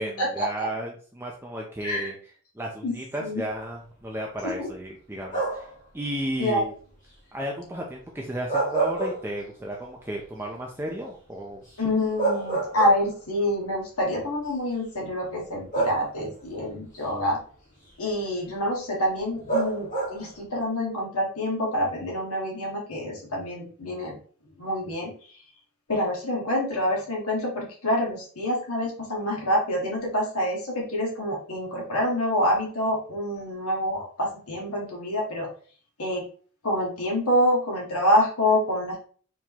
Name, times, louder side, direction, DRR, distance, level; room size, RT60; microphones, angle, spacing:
voice 1, 0.0-2.1 2.6-5.6 5.9-6.7 7.3-11.6, right 1 dB, 10° right, -1 dB, 0.6 m, -33 dB
sound 1, 5.3-5.8 8.3-9.7 10.1-10.2 11.7-11.8 12.2-13.3 14.3-14.5 15.7-16.4 19.5-20.4, right 3 dB, 35° left, 1.8 m, -28 dB
voice 2, 11.8-17.4 18.0-24.2 24.6-25.1 25.9-35.5 36.0-36.2 36.6-39.0, left 1 dB, 75° left, -1 dB, 1.6 m, -26 dB
4.5 x 3.6 x 3.0 m, 0.43 s
head